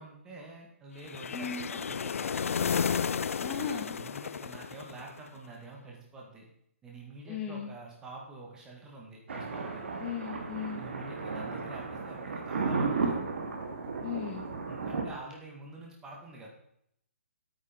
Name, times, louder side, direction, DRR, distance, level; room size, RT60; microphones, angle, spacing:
voice 1, 0.0-2.6 3.7-6.5 6.8-9.8 10.7-13.2 14.7-16.5, right 3 dB, 10° right, -1 dB, 1.9 m, -47 dB
sound 1, 1.0-5.3, left 6 dB, 80° left, 0.4 m, -32 dB
voice 2, 1.3-1.7 3.4-3.9 7.3-7.7 10.0-10.8 14.0-14.4, left 7 dB, 15° left, 1 dB, 0.9 m, -36 dB
Thunder, 9.3-15.0, right 4 dB, 60° right, 2.4 m, -34 dB
8.9 x 8.8 x 5.2 m, 0.73 s
hypercardioid pair, 165°, 7 cm